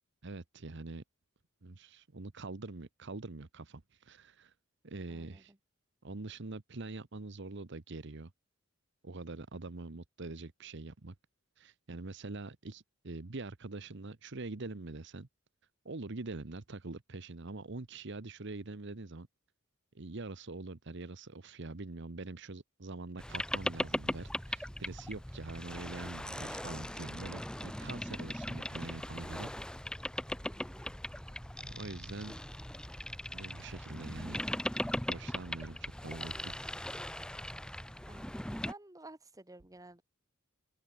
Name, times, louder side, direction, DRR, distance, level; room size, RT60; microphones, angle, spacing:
voice 1, 0.2-1.0 1.6-4.5 4.8-5.5 6.0-8.3 9.0-11.1 11.6-15.3 15.8-19.3 19.9-29.5 31.6-32.4 33.3-34.4 35.1-36.5, right 3 dB, 55° right, 1.0 m, -44 dB
voice 2, 5.1-5.6 30.4-30.9 38.1-40.0, right 2 dB, 15° right, 1.8 m, -53 dB
Boat Water vehicle, 23.2-38.7, left 1 dB, 5° left, 1.0 m, -39 dB
open air
head